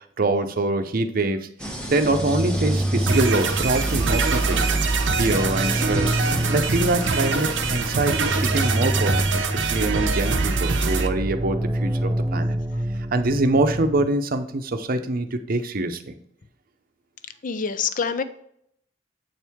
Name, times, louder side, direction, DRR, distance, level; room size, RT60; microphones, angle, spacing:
voice 1, 0.0-1.5 1.9-4.7 5.2-6.2 6.5-12.6 13.1-16.1, right 2 dB, 50° right, 8 dB, 0.7 m, -24 dB
sound 1, 1.6-8.8, equal, 5° left, 0.9 m, -34 dB
sound 2, 2.1-14.1, right 1 dB, 10° right, 0.3 m, -26 dB
sound 3, 3.1-11.1, right 5 dB, 85° right, 0.7 m, -25 dB
voice 2, 17.4-18.2, left 6 dB, 45° left, 12 dB, 0.5 m, -26 dB
7.8 x 4.6 x 3.5 m, 0.69 s
head